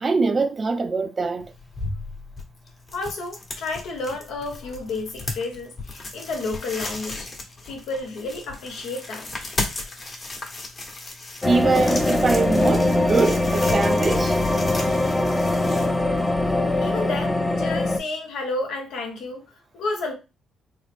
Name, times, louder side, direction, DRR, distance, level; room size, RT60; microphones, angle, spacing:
voice 1, 0.0-1.5 11.4-14.4, right 4 dB, 35° right, 0.5 m, -23 dB
sound 1, 1.4-16.5, left 2 dB, 40° left, 1.1 m, -35 dB
voice 2, 2.9-7.3 7.7-9.3 16.8-19.5 19.7-20.1, left 3 dB, 85° left, 1.1 m, -31 dB
sound 2, 11.4-18.0, left 2 dB, 15° left, 0.5 m, -22 dB
3.8 x 2.0 x 3.3 m
cardioid pair, 90°, 0 cm